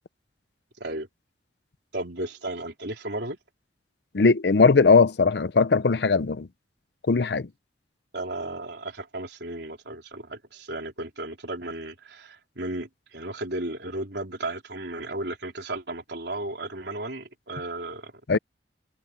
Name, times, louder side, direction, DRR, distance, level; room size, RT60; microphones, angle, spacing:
voice 1, 0.8-1.1 1.9-3.4 8.1-18.1, right 2 dB, 65° right, 4.2 m, -34 dB
voice 2, 4.1-6.5 7.1-7.5 18.3-18.4, left 4 dB, 60° left, 0.6 m, -19 dB
head